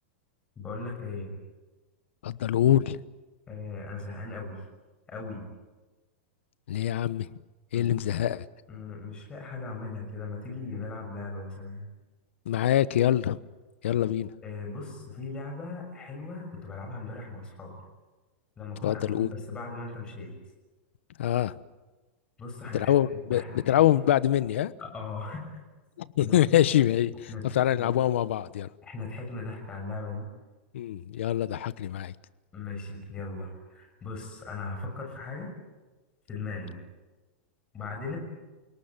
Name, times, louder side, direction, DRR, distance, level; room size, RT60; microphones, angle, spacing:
voice 1, 0.6-1.4 3.5-4.6 5.1-5.5 7.7-8.2 8.7-11.9 14.4-17.7 18.6-20.4 22.4-22.9 23.3-24.1 24.8-25.5 26.2-26.7 27.3-27.9 28.8-30.3 32.5-35.5 36.3-36.8 37.7-38.2, left 3 dB, 15° left, 2 dB, 6.4 m, -38 dB
voice 2, 2.2-3.0 6.7-7.3 7.7-8.5 12.5-13.4 13.8-14.3 18.8-19.3 21.2-21.5 22.7-24.7 26.2-28.7 30.7-32.1, left 12 dB, 75° left, 16 dB, 1.1 m, -24 dB
28.0 x 19.0 x 9.7 m, 1.2 s
supercardioid pair, 170°, 6 cm